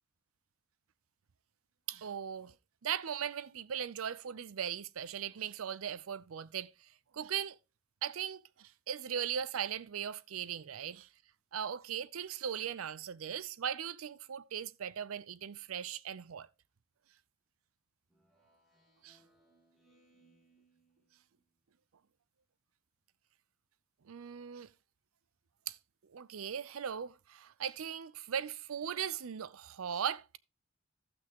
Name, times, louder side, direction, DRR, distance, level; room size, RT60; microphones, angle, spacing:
voice 1, 1.9-2.5 2.8-6.7 7.1-7.6 8.0-11.1 11.5-16.5 19.0-19.2 24.1-24.7 25.7-25.8 26.1-30.3, right 8 dB, 85° right, 0.5 m, -38 dB
Speech synthesizer, 18.1-21.6, right 2 dB, ahead, 2.8 m, -70 dB
15.0 x 6.1 x 2.9 m
head